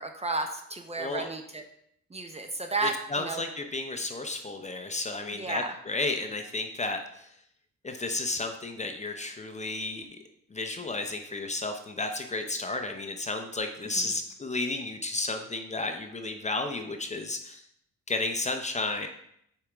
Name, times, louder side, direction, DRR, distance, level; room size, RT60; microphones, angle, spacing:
voice 1, 0.0-1.6 2.1-3.4 5.3-5.7, right 3 dB, 20° right, 5 dB, 0.7 m, -33 dB
voice 2, 1.0-1.3 2.8-7.3 7.8-10.2 10.5-17.6 18.1-19.1, left 2 dB, 20° left, 5 dB, 0.7 m, -32 dB
6.9 x 5.0 x 3.5 m, 0.72 s
cardioid pair, 100°, 31 cm